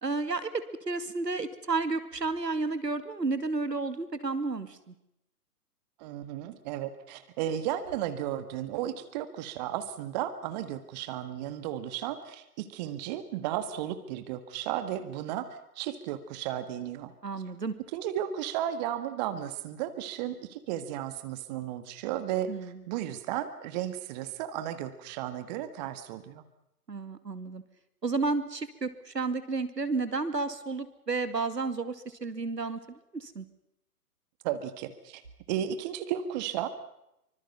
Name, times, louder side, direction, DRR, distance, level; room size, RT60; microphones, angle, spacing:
voice 1, 0.0-4.9 17.2-17.7 22.5-22.8 26.9-27.6 28.0-33.5, right 3 dB, 85° right, 11 dB, 2.4 m, -32 dB
voice 2, 6.0-17.1 17.9-26.4 34.4-35.2 35.5-36.7, right 11 dB, 25° right, 11 dB, 1.7 m, -34 dB
25.5 x 25.0 x 5.6 m, 0.80 s
figure-of-eight pair, 135°, 48 cm